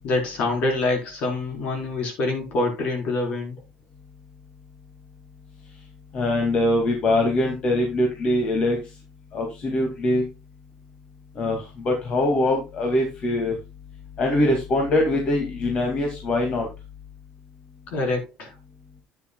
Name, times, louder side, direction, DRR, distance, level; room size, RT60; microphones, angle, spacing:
voice 1, 0.0-3.5 17.9-18.5, left 2 dB, 65° left, 4.3 m, -25 dB
voice 2, 6.1-8.8 9.3-10.3 11.4-13.6 14.2-16.7, left 1 dB, 45° left, 2.3 m, -23 dB
10.0 x 9.1 x 2.3 m
cardioid pair, 125°, 3 cm